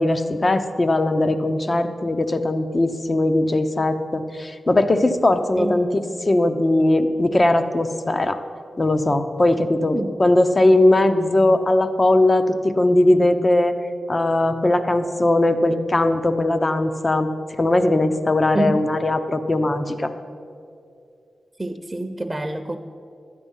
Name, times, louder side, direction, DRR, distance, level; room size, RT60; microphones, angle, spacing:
voice 1, 0.0-5.9 6.3-8.4 8.8-13.7 14.1-17.3 17.6-20.1, left 2 dB, 35° left, 9 dB, 0.8 m, -19 dB
voice 2, 9.9-10.2 18.5-18.8 21.6-22.8, right 2 dB, 20° right, 7 dB, 0.7 m, -26 dB
12.5 x 9.7 x 5.5 m, 2.5 s
cardioid pair, 60°, 0 cm